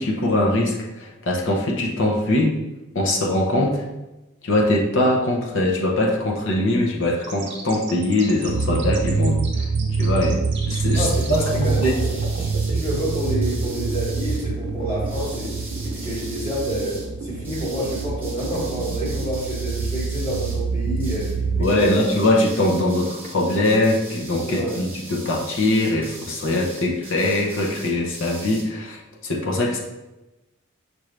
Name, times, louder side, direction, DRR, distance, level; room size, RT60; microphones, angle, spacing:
voice 1, 0.0-2.6 2.9-3.8 4.4-9.4 10.0-11.9 21.6-29.8, left 1 dB, 60° left, -1 dB, 0.7 m, -22 dB
sound 1, 7.2-19.3, right 2 dB, 55° right, 0.7 m, -35 dB
sound 2, 8.5-21.7, right 4 dB, 75° right, 0.3 m, -26 dB
voice 2, 10.9-15.6 15.9-22.0 24.5-24.8, right 1 dB, 25° left, -7 dB, 1.3 m, -29 dB
sound 3, 10.9-14.5 15.0-17.1 17.4-20.7 21.0-21.4 21.6-28.7, right 2 dB, 10° right, 1.0 m, -40 dB
5.9 x 2.6 x 3.2 m, 1.0 s
head